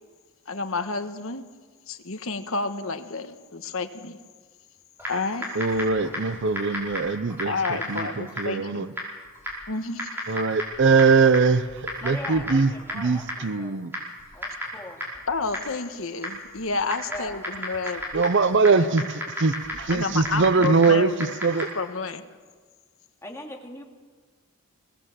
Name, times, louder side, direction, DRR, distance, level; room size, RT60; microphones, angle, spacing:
voice 1, 0.5-1.4 1.9-4.2 5.1-5.4 7.4-8.9 9.7-10.1 15.3-18.2 18.7-19.1 19.9-21.3 21.7-22.2, left 3 dB, 65° left, 9 dB, 1.4 m, -30 dB
Typing, 5.0-21.9, equal, 10° right, 5.4 m, -35 dB
voice 2, 5.6-7.5 7.9-8.9 10.3-11.6 12.0-12.7 12.9-13.9 18.1-21.1 21.4-21.7, right 4 dB, 55° right, 13 dB, 0.7 m, -21 dB
voice 3, 12.0-13.8 14.3-15.0 17.1-17.4 23.2-23.8, left 1 dB, 10° left, 1 dB, 2.4 m, -40 dB
23.0 x 18.5 x 7.5 m, 1.5 s
head